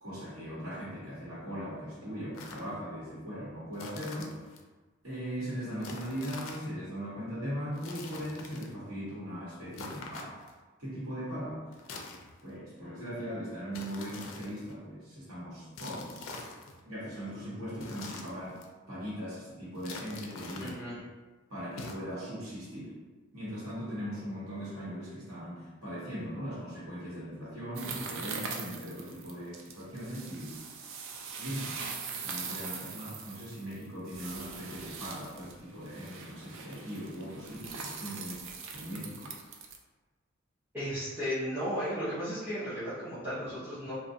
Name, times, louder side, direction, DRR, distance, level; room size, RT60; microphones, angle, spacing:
voice 1, 0.0-4.3 5.0-10.4 10.8-11.6 12.4-16.3 16.8-18.6 18.9-20.7 21.5-22.9 23.3-30.6 31.4-31.7 32.2-38.4 38.7-39.3, equal, 90° right, -8 dB, 1.1 m, -39 dB
sound 1, 2.3-2.7 3.7-4.6 5.8-6.7 7.7-8.8 9.7-10.6 11.7-12.6 13.7-14.7 15.7-16.8 17.7-18.7 19.7-20.8 21.7-21.9, left 3 dB, 70° left, 0.4 m, -45 dB
voice 2, 20.6-21.0 40.7-44.0, equal, 10° right, -13 dB, 0.6 m, -35 dB
sound 2, 27.7-39.8, right 5 dB, 65° right, 0.3 m, -42 dB
2.3 x 2.2 x 2.7 m, 1.3 s
head